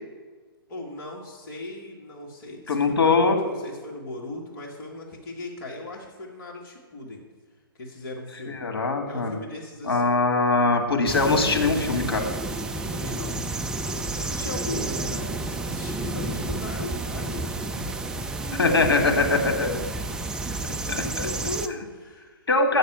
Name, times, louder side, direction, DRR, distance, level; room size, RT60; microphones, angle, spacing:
voice 1, 0.7-7.2 7.8-8.6 9.0-10.2 12.9-13.4 14.1-18.4 18.7-19.8 20.8-22.8, left 2 dB, 45° left, -1 dB, 1.9 m, -38 dB
voice 2, 2.7-3.4 8.5-9.4 9.8-12.3 18.5-19.7 20.9-21.3 22.5-22.8, left 3 dB, 75° left, 3 dB, 1.8 m, -22 dB
sound 1, 11.1-21.7, right 2 dB, 5° right, 0.3 m, -31 dB
7.8 x 6.6 x 7.4 m, 1.4 s
figure-of-eight pair, 125°, 13 cm